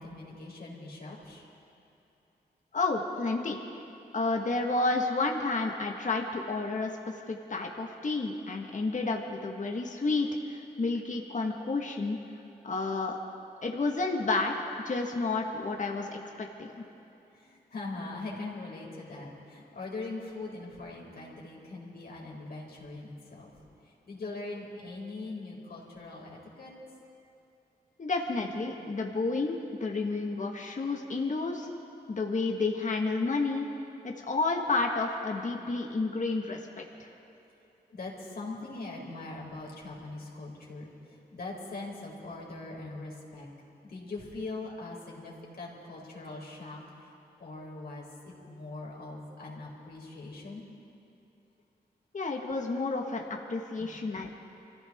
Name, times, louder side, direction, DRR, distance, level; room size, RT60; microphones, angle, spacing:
voice 1, 0.0-1.4 17.4-23.5 24.1-26.7 37.9-40.9 41.3-43.5 43.8-46.8 47.4-50.6 53.8-53.9, left 2 dB, 65° left, -3 dB, 4.1 m, -41 dB
voice 2, 2.7-3.6 4.1-6.9 7.3-12.2 12.6-13.2 13.6-14.5 14.8-16.8 28.0-31.7 32.1-33.7 34.0-37.1 52.1-54.4, left 3 dB, 45° left, 1 dB, 1.6 m, -31 dB
25.0 x 15.0 x 3.6 m, 2.8 s
cardioid pair, 60°, 17 cm